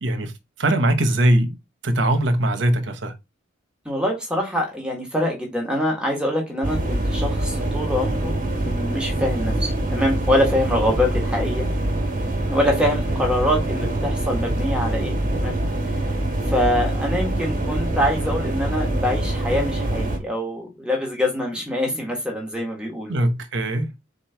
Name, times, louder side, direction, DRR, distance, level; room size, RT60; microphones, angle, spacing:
voice 1, 0.0-0.3 0.6-1.6 1.8-3.1 23.1-23.9, right 1 dB, 70° right, 0.9 m, -20 dB
voice 2, 3.8-8.4 8.6-11.6 12.5-15.6 16.5-23.1, left 1 dB, 5° right, 1.3 m, -24 dB
sound 1, 6.6-20.2, right 1 dB, 45° right, 1.2 m, -24 dB
3.9 x 3.0 x 4.4 m
head